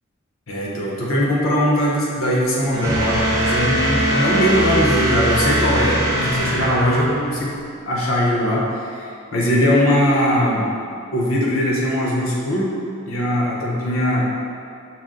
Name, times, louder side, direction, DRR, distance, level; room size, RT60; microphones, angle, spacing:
voice 1, 0.5-7.6 7.9-10.7 11.1-12.7 13.1-14.3, equal, 75° left, -4 dB, 0.9 m, -20 dB
Bowed string instrument, 2.7-6.5, right 2 dB, 85° right, 0.7 m, -25 dB
sound 1, 2.8-7.5, equal, 15° right, 0.7 m, -23 dB
5.9 x 2.1 x 3.7 m, 2.5 s
head